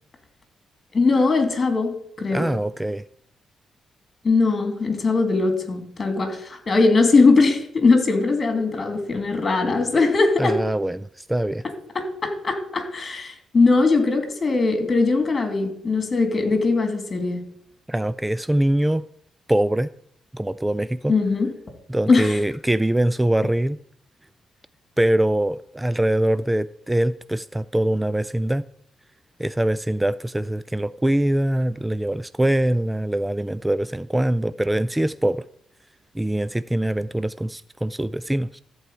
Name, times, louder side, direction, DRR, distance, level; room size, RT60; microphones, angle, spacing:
voice 1, 0.9-2.5 4.2-10.6 11.9-17.4 21.1-21.5 22.1-22.4, left 3 dB, 35° left, 2.6 m, -20 dB
voice 2, 2.3-3.0 10.4-11.6 17.9-19.0 19.5-19.9 20.3-21.1 21.9-23.8 25.0-28.6 29.4-35.4 36.1-38.6, right 1 dB, 10° right, 0.3 m, -23 dB
14.0 x 4.7 x 8.1 m
cardioid pair, 95°, 0 cm